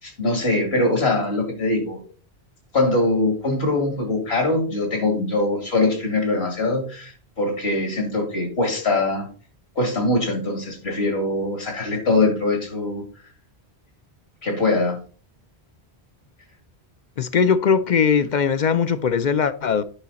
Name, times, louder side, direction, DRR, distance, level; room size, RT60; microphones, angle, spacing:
voice 1, 0.0-2.0 2.7-9.3 9.8-13.0 14.4-15.0, left 2 dB, 75° left, 2.7 m, -22 dB
voice 2, 17.2-19.8, left 6 dB, 55° left, 0.6 m, -20 dB
10.0 x 5.7 x 4.0 m
omnidirectional pair, 1.1 m